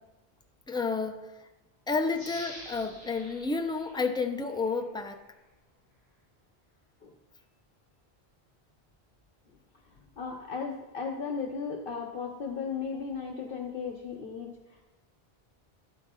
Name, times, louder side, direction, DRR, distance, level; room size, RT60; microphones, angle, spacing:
voice 1, 0.7-1.3 1.9-5.2, left 4 dB, 5° left, 5 dB, 0.5 m, -30 dB
sound 1, 2.1-4.8 5.3-5.4, equal, 35° right, 2.6 m, -48 dB
voice 2, 10.2-14.8, left 5 dB, 60° left, 2 dB, 1.1 m, -36 dB
12.0 x 8.4 x 3.8 m, 1.0 s
omnidirectional pair, 1.1 m